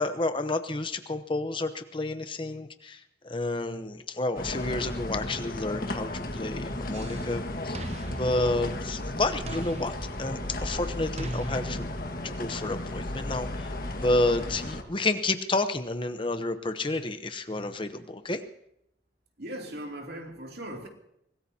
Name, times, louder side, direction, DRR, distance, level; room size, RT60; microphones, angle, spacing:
voice 1, 0.0-11.9 12.2-18.4, left 2 dB, 30° left, 0.8 m, -30 dB
sound 1, 4.4-14.8, left 1 dB, 50° left, 1.6 m, -34 dB
sound 2, 6.9-7.3 7.7-9.0 9.5-10.6 11.2-12.2, right 2 dB, 35° right, 0.9 m, -40 dB
voice 2, 19.4-20.9, right 1 dB, 60° right, 2.7 m, -38 dB
25.0 x 18.5 x 2.8 m
head